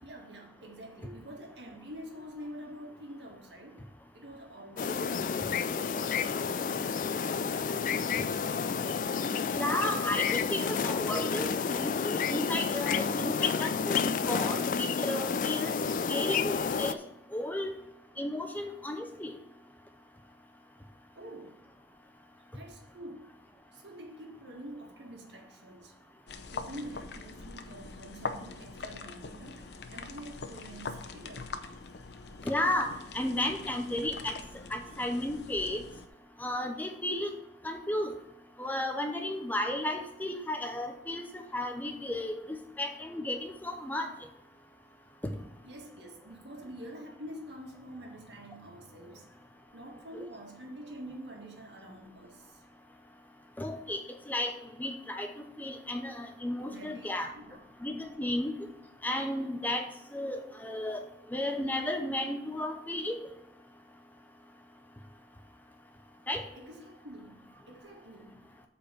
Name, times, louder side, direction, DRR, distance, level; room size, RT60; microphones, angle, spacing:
voice 1, 0.0-3.8 4.1-6.7 7.0-8.5 17.6-17.7 21.2-21.6 22.5-23.3 23.7-25.9 26.5-31.5 45.6-49.3 49.7-52.6 56.6-57.7 66.6-68.5, right 1 dB, 80° right, 1.9 m, -47 dB
sound 1, 4.8-16.9, left 6 dB, 45° left, 0.3 m, -30 dB
voice 2, 9.6-15.7 16.1-17.0 17.3-17.7 18.2-19.4 32.4-34.3 34.7-35.8 36.4-37.3 37.6-38.1 38.6-41.2 41.5-42.3 42.8-44.1 50.1-50.2 53.6-54.0 54.3-54.5 54.8-55.3 55.6-57.3 57.8-58.5 59.0-59.9 60.1-61.0 61.3-63.2 66.3-66.4, left 1 dB, 10° left, 0.6 m, -33 dB
sound 2, 26.3-36.1, left 4 dB, 70° left, 0.7 m, -43 dB
8.3 x 4.4 x 6.8 m
head